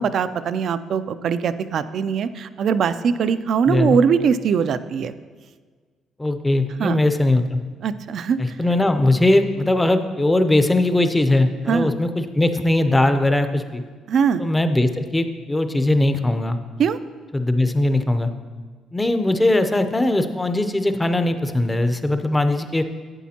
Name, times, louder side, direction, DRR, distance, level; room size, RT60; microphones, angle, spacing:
voice 1, 0.0-5.1 6.8-7.0 7.8-8.4 11.7-11.9 14.1-14.4 16.8-17.0, right 6 dB, 60° right, 13 dB, 0.4 m, -21 dB
voice 2, 3.7-4.0 6.2-7.6 8.4-13.8 14.4-16.6 17.3-18.3 18.9-22.8, left 1 dB, 15° left, 9 dB, 0.6 m, -20 dB
11.5 x 8.2 x 2.8 m, 1.5 s
cardioid pair, 95°, 0 cm